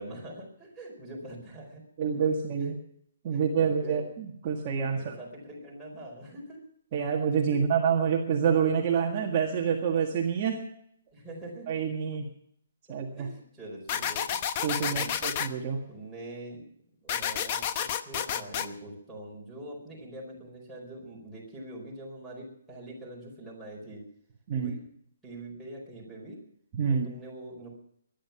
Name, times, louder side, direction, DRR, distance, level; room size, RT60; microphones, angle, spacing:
voice 1, 0.0-1.8 2.6-2.7 3.3-4.0 4.9-6.6 7.5-7.6 11.1-11.7 12.9-14.4 14.9-15.2 15.9-16.6 17.0-24.1 24.6-24.8 25.2-26.4 26.9-27.7, right 1 dB, 5° right, -6 dB, 4.6 m, -44 dB
voice 2, 2.0-2.7 3.2-5.1 6.9-10.6 11.7-12.3 12.9-13.3 14.6-15.8 24.5-24.7 26.8-27.1, right 7 dB, 30° right, -1 dB, 1.7 m, -27 dB
sound 1, 13.9-15.5 17.1-18.7, left 9 dB, 30° left, 0.8 m, -30 dB
22.0 x 10.5 x 5.9 m, 0.71 s
hypercardioid pair, 170°, 0 cm